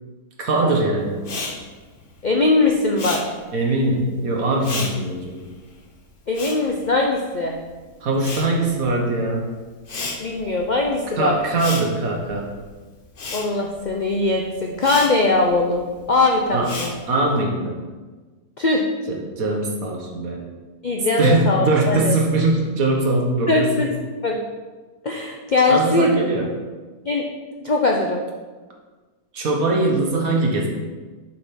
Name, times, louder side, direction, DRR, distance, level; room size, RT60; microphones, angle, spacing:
voice 1, 0.4-1.3 3.5-5.4 8.0-9.5 11.2-12.5 16.5-16.7 17.1-17.7 19.1-20.4 21.2-23.8 25.7-26.5 29.3-30.7, right 2 dB, 60° right, 0 dB, 1.7 m, -21 dB
Respiratory sounds, 1.2-7.7 7.9-17.4, left 3 dB, 40° left, 1.0 m, -34 dB
voice 2, 2.2-3.2 6.3-7.6 10.2-11.3 13.3-16.9 18.6-18.8 20.8-22.2 23.5-23.9 24.2-24.4 25.0-26.1 27.1-27.2 27.6-28.2, left 3 dB, 65° left, 1 dB, 0.4 m, -20 dB
7.2 x 5.1 x 5.7 m, 1.3 s
omnidirectional pair, 1.8 m